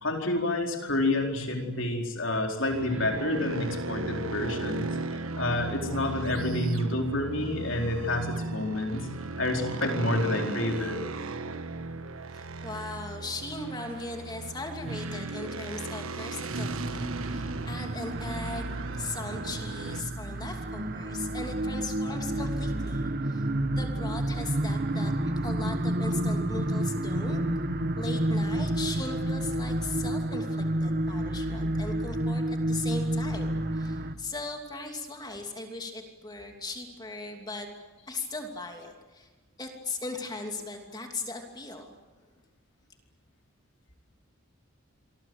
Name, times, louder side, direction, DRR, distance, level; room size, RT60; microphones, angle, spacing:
voice 1, 0.0-9.1 9.4-11.0, left 1 dB, 60° left, 2 dB, 4.5 m, -29 dB
sound 1, 2.7-20.0, right 3 dB, 75° right, 1.4 m, -36 dB
voice 2, 12.3-25.1 25.4-27.4 27.9-37.7 38.1-39.3 39.6-41.9, left 3 dB, 20° left, 3 dB, 2.8 m, -38 dB
sound 2, 16.5-34.1, right 1 dB, 45° right, 1.6 m, -30 dB
28.0 x 24.0 x 8.1 m, 1.2 s
head